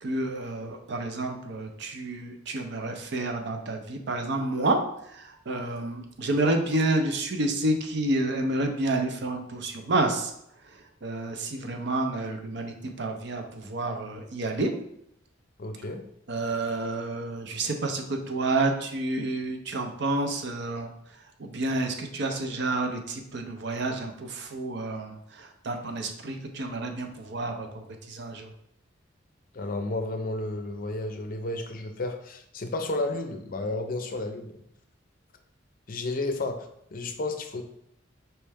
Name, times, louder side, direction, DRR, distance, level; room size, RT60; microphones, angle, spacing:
voice 1, 0.0-4.8 5.1-10.3 11.0-14.7 16.3-20.9 21.4-28.5, right 2 dB, 60° right, 5 dB, 0.6 m, -29 dB
voice 2, 15.6-16.0 29.5-34.6 35.9-37.6, left 2 dB, 45° left, 6 dB, 0.5 m, -32 dB
4.4 x 3.2 x 3.4 m, 0.75 s
head